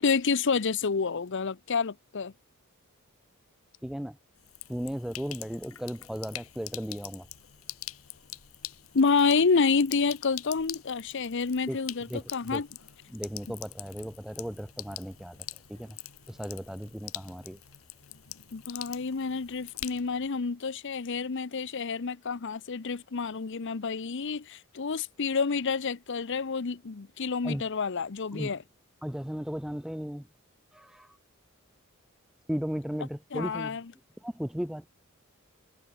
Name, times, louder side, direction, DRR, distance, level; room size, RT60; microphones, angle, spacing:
voice 1, 0.0-2.3 8.9-12.7 18.5-28.6 33.3-33.8, left 5 dB, 60° left, 0.7 m, -28 dB
voice 2, 3.8-4.2 4.7-7.3 11.7-11.8 12.1-12.6 13.1-16.0 16.3-17.6 27.4-27.7 28.3-28.6 29.0-30.3 30.7-31.1 32.5-33.8 34.2-34.9, equal, ahead, 0.5 m, -36 dB
Sink (filling or washing), 4.4-20.3, left 14 dB, 75° left, 1.2 m, -44 dB
head